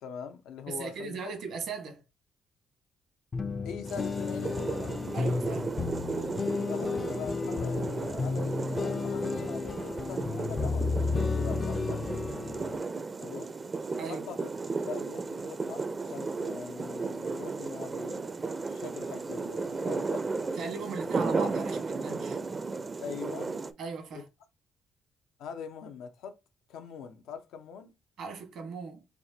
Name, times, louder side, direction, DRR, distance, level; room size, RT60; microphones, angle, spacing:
voice 1, 0.0-1.2 3.6-5.0 6.2-6.4 6.7-12.1 13.2-13.5 14.0-14.5 14.8-18.3 18.7-20.3 23.0-23.6 24.1-24.2 25.4-26.4 26.7-27.9, left 6 dB, 90° left, 0.7 m, -43 dB
voice 2, 0.7-2.0 5.1-5.7 14.0-14.3 20.6-22.4 23.8-24.2 28.2-29.0, right 5 dB, 75° right, 1.3 m, -38 dB
sound 1, 3.3-12.8, left 4 dB, 40° left, 0.4 m, -32 dB
sound 2, 3.8-23.7, right 4 dB, 30° right, 0.4 m, -34 dB
4.6 x 2.5 x 2.7 m
cardioid pair, 90°, 0 cm